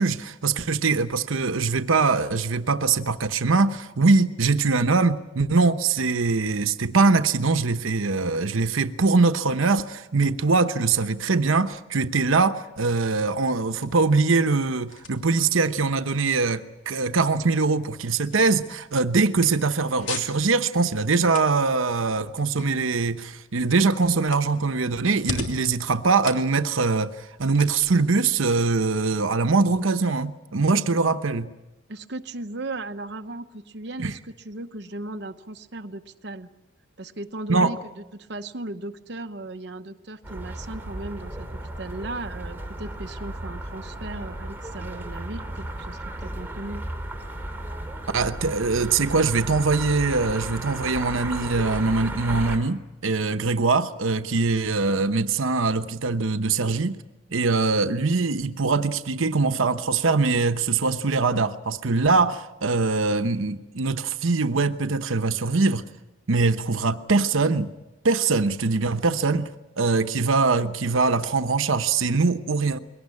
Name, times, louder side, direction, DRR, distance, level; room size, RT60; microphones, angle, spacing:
voice 1, 0.0-31.5 34.0-34.1 37.5-37.7 48.1-57.0 57.3-65.8 66.3-67.7 68.0-69.5 69.8-72.8, right 4 dB, 90° right, 0.9 m, -22 dB
sound 1, 12.9-29.9, left 3 dB, 70° left, 3.0 m, -42 dB
voice 2, 31.9-36.5 37.0-37.8 38.1-41.5 41.8-46.8, right 2 dB, 55° right, 0.9 m, -36 dB
sound 2, 40.2-52.6, right 1 dB, 10° right, 2.6 m, -34 dB
22.5 x 18.5 x 9.7 m
head